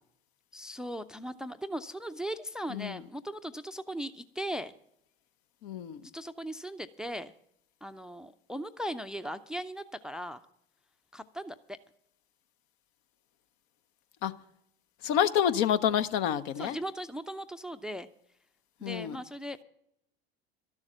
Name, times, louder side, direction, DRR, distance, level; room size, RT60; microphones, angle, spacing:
voice 1, 0.5-4.7 6.1-7.3 7.8-10.4 11.1-11.8 16.6-18.1 18.8-19.6, equal, ahead, 13 dB, 0.5 m, -38 dB
voice 2, 2.7-3.0 5.6-6.0 14.2-14.3 15.0-16.8 18.8-19.2, left 9 dB, 55° left, 12 dB, 0.8 m, -28 dB
13.0 x 7.2 x 9.0 m, 0.73 s
figure-of-eight pair, 70°, 30 cm